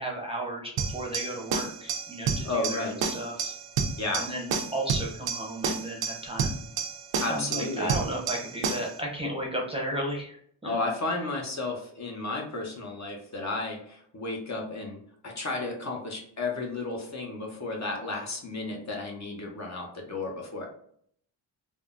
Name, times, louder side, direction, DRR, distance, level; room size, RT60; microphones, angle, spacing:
voice 1, 0.0-3.5 4.1-6.6 7.3-10.8, right 1 dB, 15° right, -2 dB, 0.7 m, -34 dB
sound 1, 0.8-9.0, right 5 dB, 75° right, 0.6 m, -31 dB
voice 2, 2.4-3.0 4.0-4.3 7.2-8.0 10.6-20.7, left 2 dB, 40° left, 1 dB, 0.7 m, -33 dB
3.5 x 2.0 x 2.4 m, 0.64 s
cardioid pair, 100°, 45 cm